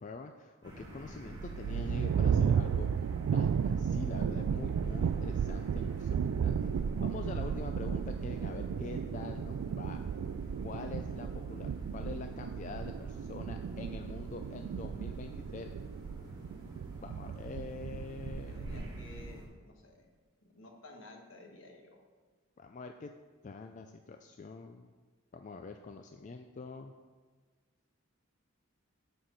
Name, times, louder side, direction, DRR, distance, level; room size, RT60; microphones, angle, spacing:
voice 1, 0.0-2.9 3.3-6.2 6.4-6.7 7.0-10.0 10.6-15.7 17.0-18.5 22.6-23.1 23.4-24.9 25.3-26.9, left 4 dB, 35° left, 5 dB, 0.3 m, -45 dB
sound 1, 0.6-19.5, equal, 20° right, 1.9 m, -49 dB
sound 2, 1.3-19.3, right 7 dB, 85° right, 0.3 m, -34 dB
voice 2, 18.3-20.1 20.4-22.0, left 2 dB, 65° left, 2 dB, 1.4 m, -53 dB
9.1 x 4.5 x 6.5 m, 1.5 s
head